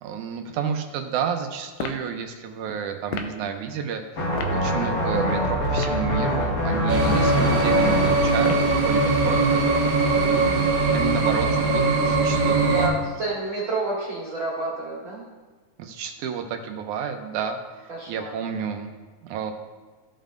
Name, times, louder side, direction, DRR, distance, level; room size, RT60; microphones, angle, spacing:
voice 1, 0.0-4.0 4.4-8.6 8.8-9.8 10.9-13.0 15.8-17.6 18.1-18.9 19.2-19.5, right 7 dB, 80° right, 5 dB, 2.1 m, -30 dB
sound 1, 1.8-2.1 3.1-3.4 4.4-4.6 5.7-6.1 7.0-7.4 8.4-8.8, left 7 dB, 75° left, 1.7 m, -33 dB
sound 2, 4.2-8.2, equal, 50° left, 1.1 m, -24 dB
sound 3, 6.9-12.9, right 3 dB, 55° right, 1.8 m, -21 dB
voice 2, 10.1-10.7 12.7-15.2 17.9-18.3, right 2 dB, 40° right, -7 dB, 2.4 m, -30 dB
15.5 x 5.4 x 2.5 m, 1.3 s
omnidirectional pair, 3.6 m